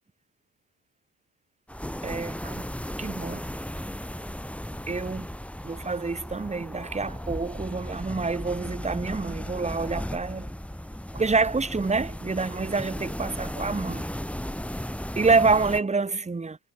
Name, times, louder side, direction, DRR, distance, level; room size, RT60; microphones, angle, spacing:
sound 1, 1.7-15.8, equal, 5° left, 7.2 m, -36 dB
voice 1, 2.0-2.6 3.0-3.4 4.9-5.3 5.6-10.5 11.1-14.1 15.1-16.6, right 4 dB, 15° right, 1.5 m, -27 dB
figure-of-eight pair, 45°, 44 cm